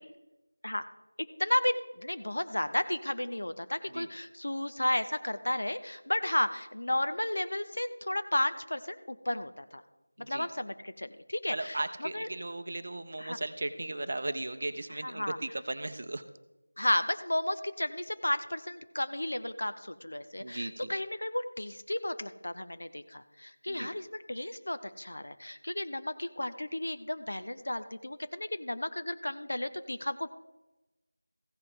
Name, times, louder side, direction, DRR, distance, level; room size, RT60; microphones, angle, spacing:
voice 1, 1.4-9.8 10.2-12.3 13.2-13.4 15.0-15.4 16.8-30.3, left 1 dB, 55° left, 10 dB, 0.7 m, -33 dB
voice 2, 11.5-16.2 20.4-20.9 23.7-23.9, right 2 dB, 40° right, 9 dB, 0.6 m, -36 dB
15.0 x 5.8 x 4.8 m, 1.0 s
figure-of-eight pair, 170°, 0 cm